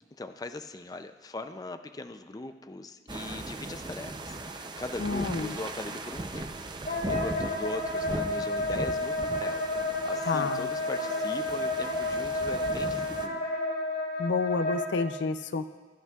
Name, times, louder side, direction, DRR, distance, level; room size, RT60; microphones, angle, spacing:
voice 1, 0.2-6.5 6.9-13.5, left 2 dB, 20° left, 8 dB, 0.4 m, -40 dB
sound 1, 3.1-13.3, right 2 dB, 25° right, 0.6 m, -38 dB
voice 2, 5.0-5.6 10.3-10.7 14.2-15.6, left 4 dB, 85° left, 11 dB, 0.5 m, -30 dB
Wind instrument woodwind instrument, 6.9-15.1, left 2 dB, 60° left, 3.4 m, -31 dB
21.0 x 11.0 x 2.4 m, 1.4 s
head